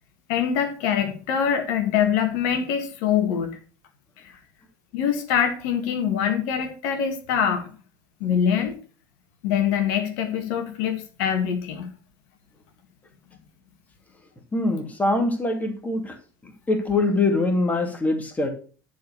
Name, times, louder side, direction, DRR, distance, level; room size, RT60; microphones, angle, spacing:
voice 1, 0.3-3.5 4.2-4.3 4.9-7.7 8.2-8.8 9.4-11.9, left 8 dB, 55° left, 5 dB, 2.0 m, -24 dB
voice 2, 14.5-16.2 16.4-18.5, left 2 dB, 15° left, 4 dB, 2.5 m, -23 dB
11.5 x 4.7 x 6.9 m, 0.39 s
figure-of-eight pair, 70°, 11 cm